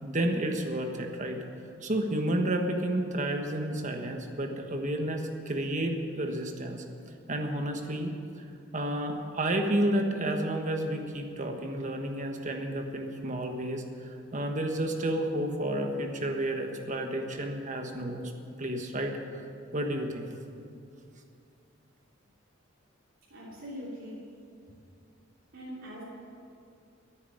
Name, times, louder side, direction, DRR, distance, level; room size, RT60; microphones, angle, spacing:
voice 1, 0.0-1.4 1.8-6.8 7.3-8.4 8.7-18.3 18.6-19.4 19.7-20.3, right 1 dB, 40° right, 4 dB, 1.3 m, -31 dB
voice 2, 23.3-24.3 25.5-26.0, equal, 85° right, -9 dB, 3.3 m, -42 dB
11.0 x 9.5 x 9.2 m, 2.5 s
head